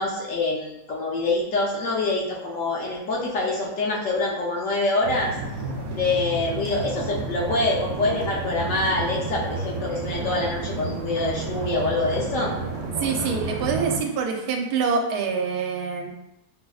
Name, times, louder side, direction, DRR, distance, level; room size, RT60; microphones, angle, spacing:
voice 1, 0.0-5.3 5.9-12.5, left 2 dB, 65° left, -3 dB, 0.9 m, -25 dB
sound 1, 5.0-14.0, right 3 dB, 65° right, 1.1 m, -31 dB
voice 2, 13.0-16.1, right 5 dB, 85° right, 2 dB, 1.2 m, -25 dB
5.7 x 2.0 x 2.3 m, 0.89 s
omnidirectional pair, 1.7 m